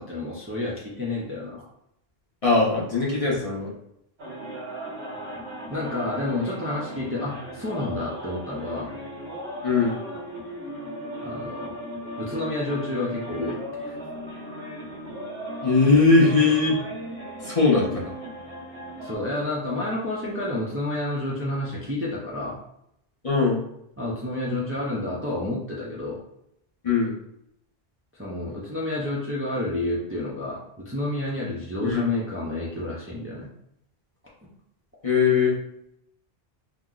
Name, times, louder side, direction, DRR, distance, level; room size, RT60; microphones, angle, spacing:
voice 1, 0.0-1.6 5.7-8.9 11.2-11.8 12.2-14.0 19.0-22.6 24.0-26.2 28.1-33.5, left 2 dB, 15° right, -5 dB, 0.5 m, -30 dB
voice 2, 2.4-3.7 9.6-10.0 15.6-16.8 17.4-18.1 23.2-23.6 24.5-24.6 26.8-27.1 31.8-32.1 35.0-35.5, left 4 dB, 40° left, -6 dB, 0.7 m, -20 dB
sound 1, 4.2-19.2, equal, 90° right, 1.2 m, -37 dB
2.9 x 2.0 x 3.7 m, 0.78 s
omnidirectional pair, 1.0 m